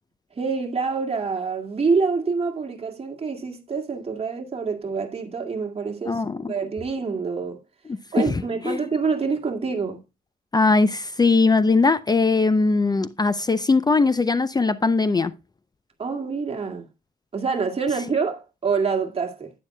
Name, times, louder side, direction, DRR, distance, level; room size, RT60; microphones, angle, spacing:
voice 1, 0.4-7.6 8.1-10.0 16.0-16.9 17.3-19.5, right 5 dB, 40° right, 2.1 m, -26 dB
voice 2, 6.1-6.5 8.6-8.8 10.5-15.3, left 3 dB, 25° left, 0.5 m, -20 dB
11.5 x 9.4 x 2.2 m
wide cardioid pair, 110°, 16 cm